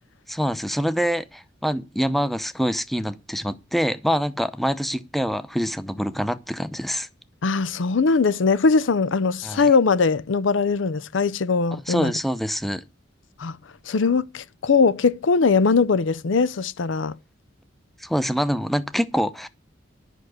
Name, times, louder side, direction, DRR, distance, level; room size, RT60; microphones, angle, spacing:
voice 1, 0.3-7.1 9.4-9.6 11.7-12.8 18.0-19.5, equal, ahead, 0.7 m, -25 dB
voice 2, 7.4-12.1 13.4-13.6 13.9-17.2, left 4 dB, 85° left, 0.6 m, -20 dB
11.0 x 5.9 x 8.0 m
head